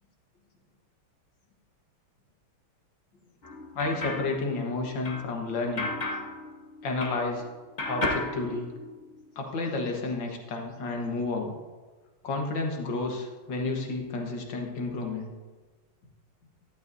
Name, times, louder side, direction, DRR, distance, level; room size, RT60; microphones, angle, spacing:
sound 1, 3.4-7.5 7.8-9.3, left 2 dB, 45° left, 0.6 m, -35 dB
voice 1, 3.8-5.9 6.8-7.5 7.9-8.7 9.4-11.5 12.2-15.3, left 3 dB, 60° left, 1 dB, 2.0 m, -31 dB
12.0 x 11.5 x 2.7 m, 1.3 s
omnidirectional pair, 2.3 m